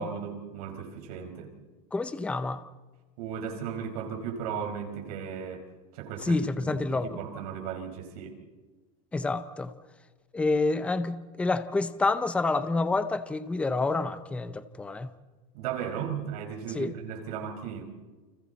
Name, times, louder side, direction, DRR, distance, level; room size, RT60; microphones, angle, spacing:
voice 1, 0.0-1.5 3.2-5.6 5.9-8.4 15.5-17.8, right 7 dB, 80° right, 5.0 m, -36 dB
voice 2, 1.9-2.6 6.2-7.2 9.1-9.7 10.3-15.1 16.7-16.9, left 3 dB, 5° left, 0.7 m, -28 dB
29.5 x 26.0 x 4.2 m
cardioid pair, 175°, 19 cm